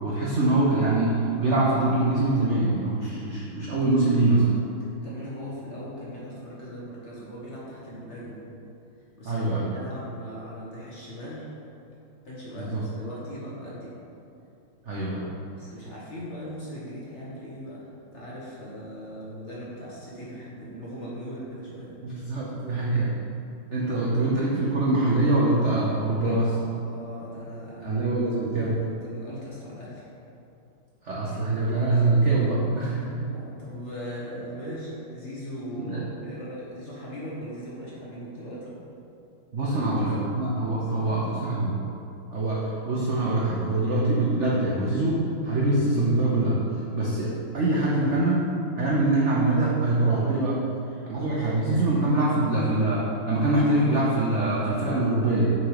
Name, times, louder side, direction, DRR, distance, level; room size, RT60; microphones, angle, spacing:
voice 1, 0.0-4.4 9.3-9.7 12.6-12.8 14.9-15.3 22.0-23.1 23.7-26.5 27.8-28.8 31.0-33.3 35.7-36.0 39.5-41.8 42.3-46.6 46.9-48.4 48.8-50.6 51.1-55.4, right 2 dB, 65° right, -5 dB, 0.7 m, -24 dB
voice 2, 5.0-8.5 9.1-11.4 12.2-13.9 15.5-21.9 26.2-27.9 28.5-30.1 33.3-38.7 39.6-40.3 40.6-41.2, equal, 40° left, -7 dB, 1.2 m, -39 dB
6.4 x 4.6 x 4.8 m, 2.7 s
omnidirectional pair, 2.4 m